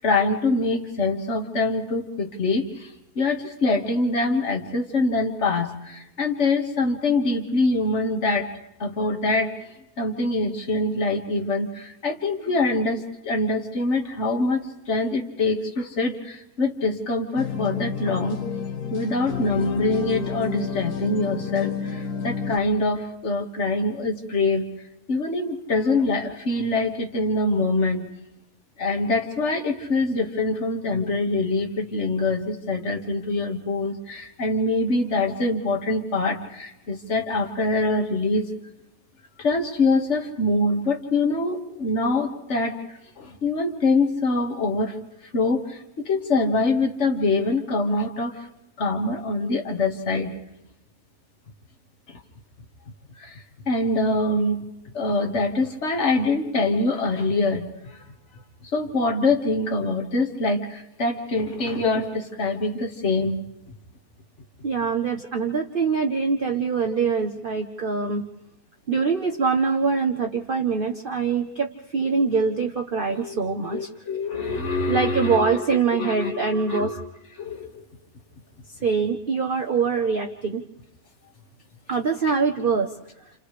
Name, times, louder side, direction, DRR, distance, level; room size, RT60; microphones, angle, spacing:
voice 1, 0.0-8.5 8.8-9.6 10.0-18.4 18.9-24.7 25.1-28.1 28.8-38.5 39.4-42.8 43.2-45.0 45.3-48.5 48.8-50.4 52.1-52.2 53.2-54.6 54.9-58.0 58.6-63.4 73.1-73.4 73.7-77.0 77.4-77.8, left 2 dB, 50° left, 4 dB, 2.1 m, -24 dB
sound 1, 17.4-22.6, left 6 dB, 70° left, 1.7 m, -30 dB
voice 2, 64.6-68.2 68.9-73.9 74.9-76.9 78.8-80.6 81.9-82.9, right 5 dB, 40° right, 2 dB, 1.0 m, -24 dB
29.5 x 29.0 x 3.3 m, 0.91 s
omnidirectional pair, 1.6 m